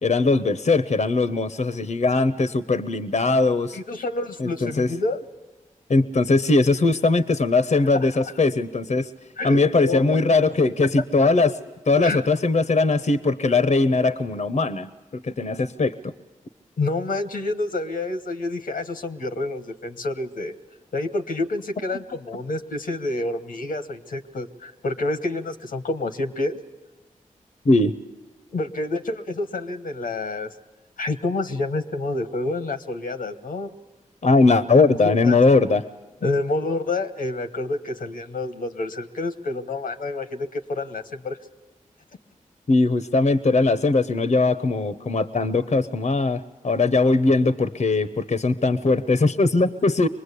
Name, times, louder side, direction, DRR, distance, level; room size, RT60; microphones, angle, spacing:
voice 1, 0.0-3.8 4.4-4.9 5.9-9.1 9.4-11.5 11.9-16.1 27.6-27.9 34.2-35.8 42.7-50.1, left 3 dB, 55° left, 12 dB, 0.9 m, -20 dB
voice 2, 3.7-5.2 8.2-8.3 9.4-10.2 11.2-11.3 12.0-12.2 16.8-20.5 20.9-26.6 28.5-30.5 31.0-33.7 34.8-35.4 36.2-41.4, left 2 dB, 85° left, 8 dB, 1.3 m, -28 dB
24.5 x 20.5 x 8.4 m, 1.2 s
cardioid pair, 45°, 14 cm